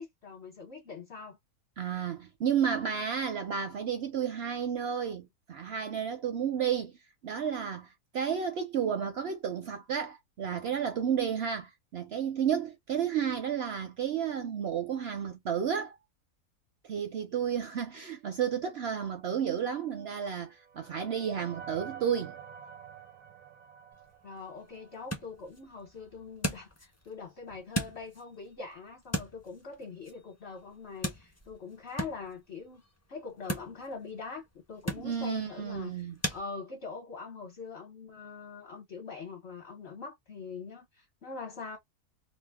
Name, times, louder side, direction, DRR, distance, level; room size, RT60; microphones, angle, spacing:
voice 1, 0.0-1.4 24.2-32.8 33.1-41.8, left 4 dB, 50° left, 1.0 m, -43 dB
voice 2, 1.8-6.9 7.2-15.9 16.8-22.3 35.0-36.1, right 8 dB, 65° right, 0.6 m, -32 dB
sound 1, 19.9-25.2, right 8 dB, 85° right, 1.1 m, -48 dB
sound 2, 23.9-36.4, right 1 dB, 20° left, 0.4 m, -40 dB
2.6 x 2.1 x 3.3 m
omnidirectional pair, 1.6 m